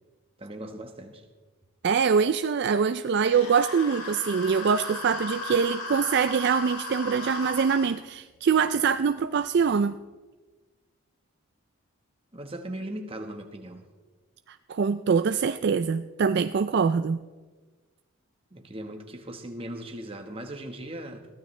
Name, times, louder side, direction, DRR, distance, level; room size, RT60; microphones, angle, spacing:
voice 1, 0.4-1.2 12.3-13.8 18.5-21.3, right 1 dB, 25° right, 4 dB, 1.3 m, -38 dB
voice 2, 1.8-9.9 14.5-17.2, right 6 dB, 50° right, 11 dB, 0.3 m, -24 dB
sound 1, 3.3-7.9, left 2 dB, 80° left, 3.8 m, -36 dB
22.0 x 15.0 x 3.3 m, 1.3 s
head